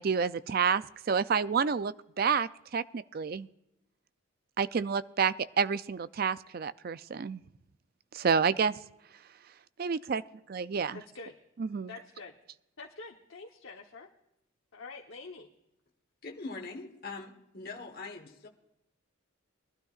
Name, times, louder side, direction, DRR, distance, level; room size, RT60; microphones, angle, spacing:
voice 1, 0.0-3.5 4.6-7.4 8.1-8.8 9.8-10.2 10.5-11.0 11.6-11.9, right 6 dB, 45° right, 15 dB, 0.4 m, -29 dB
voice 2, 10.9-11.4 11.9-12.3 12.8-14.1 14.7-15.5, left 4 dB, 65° left, 0 dB, 1.0 m, -46 dB
voice 3, 16.2-18.5, left 3 dB, 45° left, 3 dB, 1.3 m, -42 dB
22.0 x 12.5 x 2.4 m, 0.86 s
head